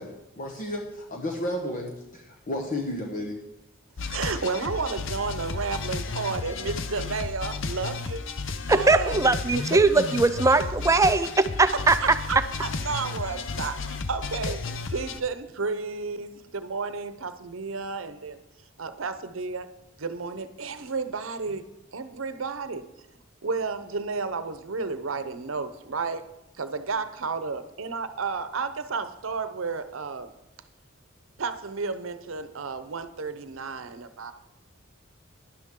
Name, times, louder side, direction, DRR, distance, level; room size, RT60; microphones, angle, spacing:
voice 1, 0.0-3.4, left 1 dB, 40° left, 1.0 m, -33 dB
sound 1, 4.0-15.2, left 4 dB, 65° left, 0.7 m, -33 dB
voice 2, 4.1-8.2 8.7-10.1 10.6-10.7 12.0-14.6 14.9-18.4 18.8-19.7 20.0-21.6 21.9-22.8 23.4-26.2 26.6-30.3 31.4-34.3, right 4 dB, 75° right, 0.8 m, -32 dB
voice 3, 8.7-12.0, right 3 dB, 15° right, 0.4 m, -20 dB
12.0 x 11.0 x 3.7 m
head